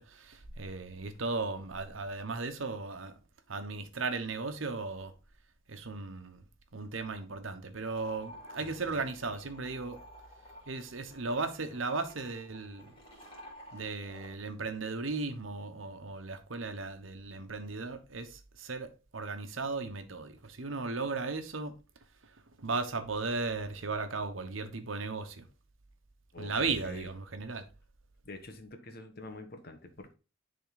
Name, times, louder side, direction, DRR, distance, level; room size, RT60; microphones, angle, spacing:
voice 1, 0.0-3.1 3.5-5.1 5.7-6.4 6.7-10.0 10.7-12.9 13.7-21.7 22.6-25.4 26.4-27.6, right 3 dB, 85° right, 1.1 m, -36 dB
sound 1, 7.8-14.3, equal, 30° left, 3.1 m, -52 dB
voice 2, 8.6-9.1 26.3-26.5 26.8-27.1 28.2-30.1, left 2 dB, 50° left, 1.3 m, -47 dB
10.5 x 3.8 x 4.0 m
head